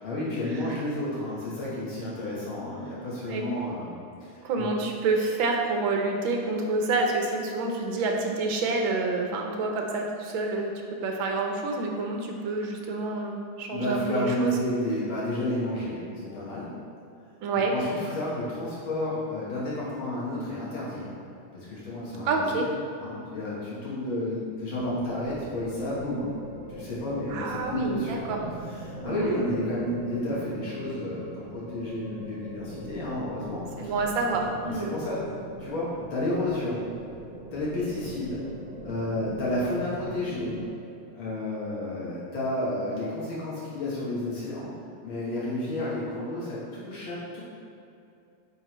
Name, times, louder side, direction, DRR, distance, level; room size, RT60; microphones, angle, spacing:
voice 1, 0.0-4.7 13.7-16.7 17.5-21.1 21.5-22.6 23.0-26.3 26.7-28.3 28.7-33.9 34.7-35.2 35.6-36.8 37.5-38.4 38.8-40.6 41.1-44.7 45.0-47.4, left 1 dB, 75° left, -7 dB, 2.0 m, -31 dB
voice 2, 4.4-14.5 17.4-17.7 22.2-22.7 27.3-28.4 29.0-29.4 33.8-34.9, right 3 dB, 70° right, 2 dB, 1.6 m, -28 dB
sound 1, 24.7-40.7, right 1 dB, 55° right, 2.2 m, -41 dB
8.7 x 5.0 x 3.0 m, 2.6 s
omnidirectional pair, 2.3 m